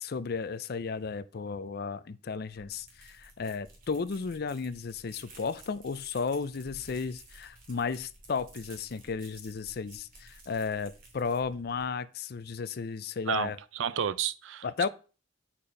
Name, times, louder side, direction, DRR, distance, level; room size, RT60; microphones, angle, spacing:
voice 1, 0.0-13.6 14.6-14.9, left 5 dB, 55° left, 0.5 m, -34 dB
sound 1, 2.5-11.9, right 2 dB, 50° right, 2.6 m, -54 dB
voice 2, 13.3-14.9, right 8 dB, 85° right, 0.5 m, -32 dB
8.6 x 4.4 x 5.0 m
head